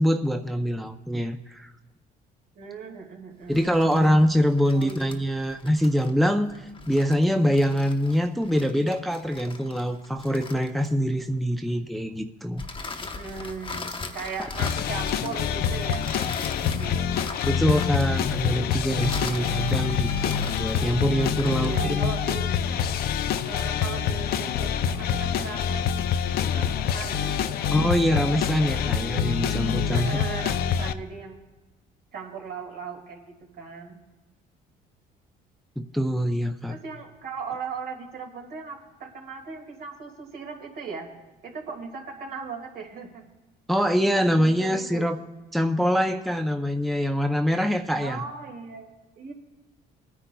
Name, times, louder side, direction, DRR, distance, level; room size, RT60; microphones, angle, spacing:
voice 1, 0.0-1.7 3.5-6.5 6.9-12.6 17.4-22.1 27.7-30.1 35.8-36.7 43.7-45.2 45.5-48.2, equal, ahead, 6 dB, 0.5 m, -24 dB
voice 2, 2.6-3.9 4.7-5.2 13.0-17.1 19.3-19.9 21.6-22.5 23.4-25.9 26.2-27.8 29.9-31.4 32.1-34.0 36.7-41.1 41.4-43.3 44.1-45.1 45.8-45.9 48.0-49.3, right 5 dB, 65° right, 1 dB, 2.1 m, -38 dB
sound 1, 3.4-11.2 12.6-21.9, left 3 dB, 30° left, 0.9 m, -39 dB
sound 2, 14.6-30.9, left 8 dB, 65° left, 0.5 m, -26 dB
27.5 x 9.9 x 2.3 m, 1.1 s
cardioid pair, 110°, 17 cm